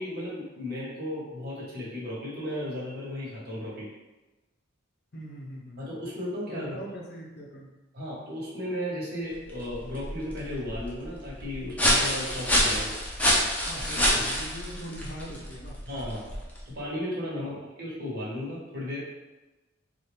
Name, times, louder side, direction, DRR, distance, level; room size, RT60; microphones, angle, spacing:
voice 1, 0.0-3.9 5.8-6.8 7.9-12.9 13.9-14.2 15.9-16.3 16.6-19.0, left 1 dB, 50° right, -7 dB, 1.4 m, -35 dB
voice 2, 5.1-5.9 6.5-7.7 13.6-15.8 17.4-17.6, equal, 50° left, -1 dB, 0.6 m, -41 dB
sound 1, 9.3-16.8, equal, 5° left, 0.6 m, -28 dB
4.2 x 2.4 x 3.4 m, 1.1 s
head